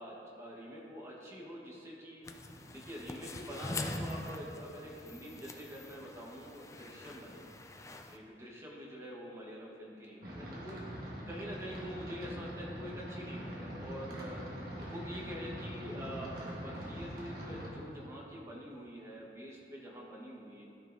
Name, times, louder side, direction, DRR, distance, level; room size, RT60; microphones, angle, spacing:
voice 1, 0.0-2.2 2.6-7.5 8.1-10.8 11.2-14.4 14.8-20.6, equal, 15° right, -4 dB, 1.2 m, -46 dB
sound 1, 2.2-8.2, left 2 dB, 15° left, 0.3 m, -43 dB
sound 2, 10.2-17.7, equal, 55° right, 1.5 m, -43 dB
13.5 x 5.5 x 2.7 m, 2.9 s
head